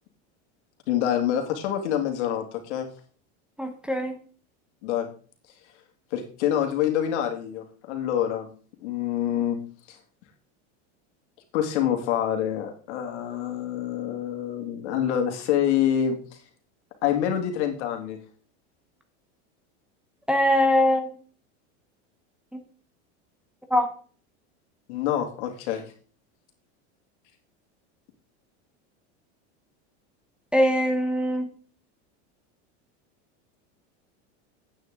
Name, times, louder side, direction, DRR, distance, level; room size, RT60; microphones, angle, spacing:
voice 1, 0.9-2.9 4.8-5.1 6.1-8.5 8.8-9.6 9.9-10.0 11.5-16.2 17.0-18.2 24.9-25.8, left 10 dB, 75° left, 4 dB, 2.4 m, -26 dB
voice 2, 3.6-4.2 20.3-21.1 22.5-22.6 23.7-23.9 30.5-31.5, left 1 dB, 5° right, 4 dB, 0.9 m, -22 dB
9.6 x 8.9 x 3.8 m, 0.42 s
supercardioid pair, 135°, 35 cm